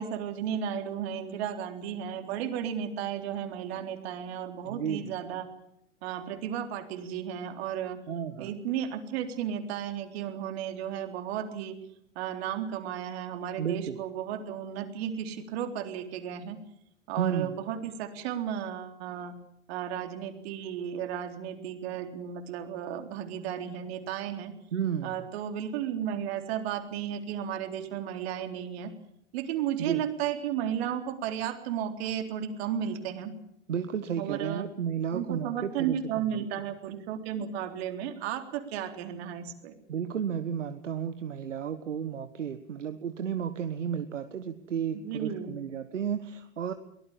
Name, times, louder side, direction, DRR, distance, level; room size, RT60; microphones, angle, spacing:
voice 1, 0.0-5.5 6.0-8.0 8.4-11.8 12.2-16.6 17.1-19.3 19.7-24.5 25.0-28.9 29.3-33.3 34.2-34.7 35.1-39.8 44.9-45.6, right 9 dB, 55° right, 6 dB, 3.9 m, -34 dB
voice 2, 4.6-5.1 8.1-8.6 13.6-14.0 17.2-17.5 24.7-25.1 29.8-30.0 33.7-36.4 39.9-46.7, right 8 dB, 75° right, 10 dB, 1.5 m, -33 dB
23.5 x 19.0 x 7.4 m, 0.75 s
figure-of-eight pair, 90°, 37 cm